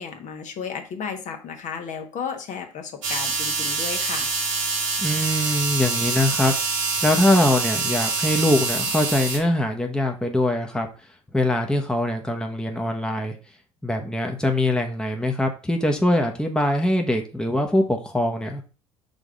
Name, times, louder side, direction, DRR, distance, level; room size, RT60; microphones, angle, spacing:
voice 1, 0.0-4.3, left 6 dB, 50° left, 5 dB, 1.3 m, -33 dB
sound 1, 3.0-9.4, right 4 dB, 85° right, 1.4 m, -25 dB
voice 2, 5.0-6.5 7.0-10.9 11.3-13.3 13.8-18.6, left 1 dB, 5° left, 3 dB, 0.9 m, -22 dB
5.2 x 3.6 x 5.0 m, 0.35 s
hypercardioid pair, 65°, 16 cm